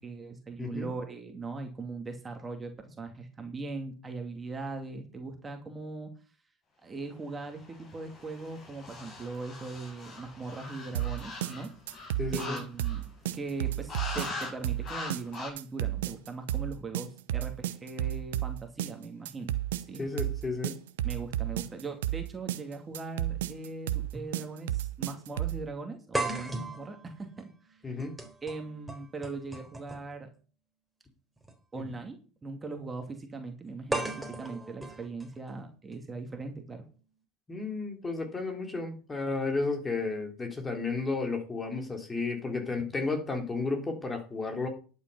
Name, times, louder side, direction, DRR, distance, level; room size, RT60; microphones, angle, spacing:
voice 1, 0.0-6.1 6.8-11.7 12.3-13.0 13.3-20.0 21.0-27.8 28.4-30.3 31.7-36.8, right 3 dB, 20° right, 4 dB, 2.5 m, -40 dB
voice 2, 0.6-0.9 12.2-12.6 20.0-20.8 27.8-28.2 31.8-31.9 37.5-44.7, left 3 dB, 20° left, 4 dB, 3.6 m, -33 dB
sound 1, 7.6-13.2 13.9-14.5 14.8-15.5, left 3 dB, 40° left, 7.4 m, -41 dB
sound 2, 10.9-25.6, right 13 dB, 75° right, 0.8 m, -32 dB
sound 3, 22.9-23.0 24.1-24.3 24.7-24.8 26.1-30.2 31.4-31.5 33.9-35.9, right 2 dB, 5° right, 3.8 m, -37 dB
11.0 x 8.5 x 5.6 m, 0.37 s
hypercardioid pair, 75°, 0 cm